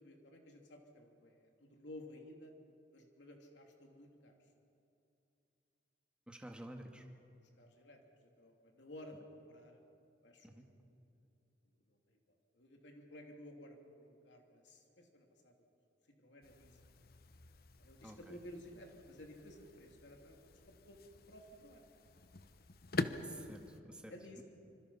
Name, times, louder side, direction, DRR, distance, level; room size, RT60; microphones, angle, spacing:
voice 1, 0.0-2.5 2.9-4.5 7.4-9.8 10.2-10.6 11.9-12.2 12.5-15.5 16.2-16.9 17.8-20.5 20.9-21.0 21.3-21.8 24.1-24.4, left 1 dB, 90° left, 2 dB, 2.9 m, -55 dB
voice 2, 6.3-7.1 10.4-10.7 18.0-18.4 23.2-24.4, right 1 dB, 5° right, 3 dB, 1.8 m, -51 dB
sound 1, 16.4-23.8, left 2 dB, 55° left, 0.9 m, -46 dB
26.0 x 26.0 x 5.7 m, 2.7 s
head